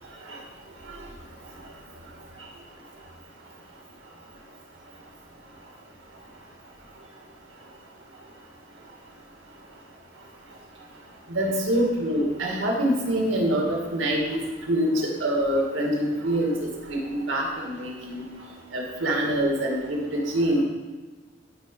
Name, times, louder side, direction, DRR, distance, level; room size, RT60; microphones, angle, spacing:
voice 1, 11.3-14.4 14.7-16.5 16.9-18.2 18.7-20.6, right 1 dB, 90° right, -1 dB, 2.1 m, -25 dB
11.5 x 5.0 x 5.4 m, 1.3 s
head